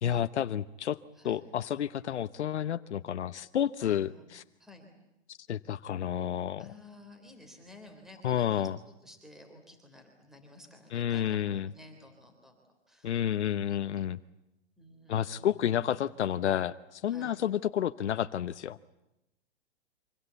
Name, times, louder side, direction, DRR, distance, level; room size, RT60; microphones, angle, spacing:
voice 1, 0.0-1.0 1.2-4.4 5.3-6.6 8.2-8.8 10.9-11.7 13.0-14.2 15.1-18.8, left 10 dB, 90° left, 11 dB, 1.0 m, -30 dB
voice 2, 3.8-4.2 4.6-4.9 6.6-12.6 12.9-13.1 14.8-15.9 17.1-17.4, left 1 dB, ahead, 4 dB, 3.4 m, -53 dB
27.0 x 25.5 x 8.2 m, 0.90 s
hypercardioid pair, 165°, 33 cm